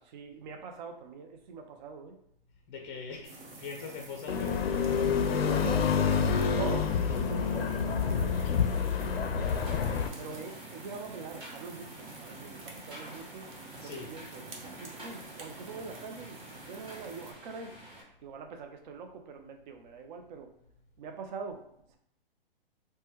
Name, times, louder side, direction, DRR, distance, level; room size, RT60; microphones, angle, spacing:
voice 1, 0.0-2.2 4.9-8.6 8.9-9.9 10.2-13.5 13.8-16.4 16.7-17.7 18.2-20.5 21.0-21.6 21.9-22.0, right 5 dB, 50° right, 5 dB, 0.5 m, -44 dB
voice 2, 2.7-4.5 13.7-14.2, left 5 dB, 30° left, 1 dB, 0.4 m, -42 dB
sound 1, 3.2-17.3, right 3 dB, 70° right, 0.9 m, -49 dB
sound 2, 4.3-10.1, left 6 dB, 85° left, 0.5 m, -28 dB
sound 3, 9.4-18.0, right 1 dB, 15° right, 0.9 m, -50 dB
3.3 x 2.1 x 3.0 m, 0.72 s
hypercardioid pair, 130°, 29 cm